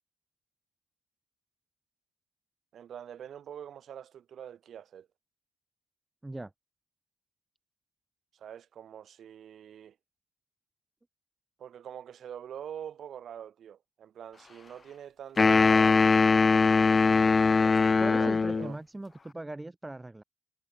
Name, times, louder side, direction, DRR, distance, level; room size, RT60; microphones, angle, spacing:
voice 1, 2.7-5.1 8.3-10.0 11.6-16.0 17.6-18.8, right 9 dB, 65° right, 5.0 m, -44 dB
sound 1, 15.4-18.7, left 4 dB, 30° left, 0.4 m, -21 dB
voice 2, 18.0-20.2, right 2 dB, 15° right, 7.4 m, -39 dB
cardioid pair, 90°, 0 cm